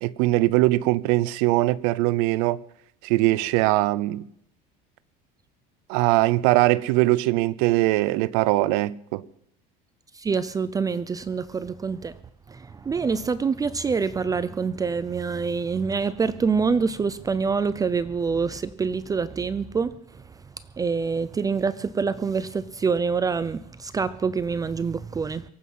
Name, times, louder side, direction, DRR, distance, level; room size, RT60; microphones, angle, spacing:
voice 1, 0.0-2.6 3.0-4.2 5.9-9.2, right 18 dB, 80° right, 0.7 m, -21 dB
voice 2, 10.1-12.2 12.5-20.0 20.8-25.4, right 5 dB, 20° right, 0.6 m, -26 dB
23.5 x 8.5 x 5.5 m
supercardioid pair, 115°, 19 cm